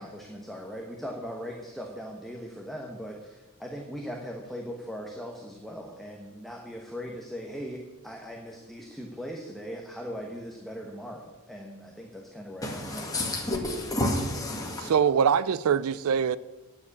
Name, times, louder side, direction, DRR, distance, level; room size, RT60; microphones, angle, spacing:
voice 1, 0.0-13.1, equal, ahead, 1.0 m, -39 dB
voice 2, 12.6-14.9, left 1 dB, 15° left, 2.1 m, -30 dB
voice 3, 14.9-16.4, right 7 dB, 85° right, 0.4 m, -23 dB
9.7 x 7.0 x 8.5 m
head